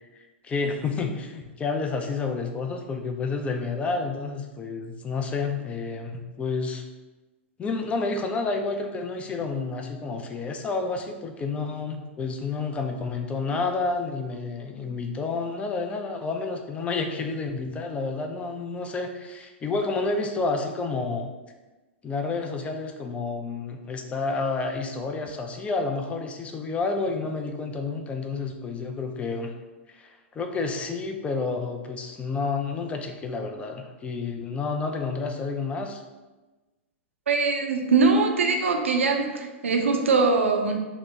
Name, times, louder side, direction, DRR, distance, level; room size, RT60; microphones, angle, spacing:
voice 1, 0.4-6.8 7.6-21.3 22.0-29.5 29.9-36.0, left 4 dB, 20° left, 4 dB, 0.4 m, -30 dB
voice 2, 37.3-40.8, right 4 dB, 80° right, 3 dB, 0.4 m, -22 dB
2.8 x 2.0 x 3.5 m, 1.2 s
hypercardioid pair, 105°, 7 cm